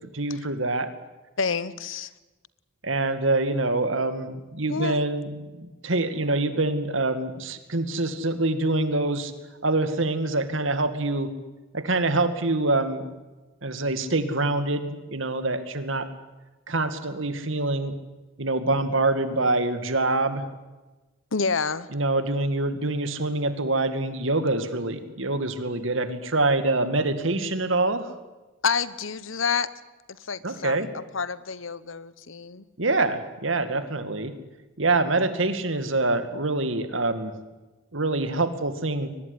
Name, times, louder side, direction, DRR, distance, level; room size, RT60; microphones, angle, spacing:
voice 1, 0.1-0.9 2.8-5.3 5.6-9.3 9.6-11.3 11.7-13.0 13.6-16.1 16.7-17.9 18.4-20.4 21.9-28.1 30.4-30.9 32.8-34.3 34.8-37.3 37.9-39.1, right 2 dB, 75° right, 10 dB, 2.3 m, -25 dB
voice 2, 1.4-2.1 4.7-5.0 21.3-21.9 28.6-29.7 30.1-32.7, left 5 dB, 75° left, 16 dB, 1.1 m, -28 dB
22.5 x 20.0 x 9.9 m, 1.1 s
head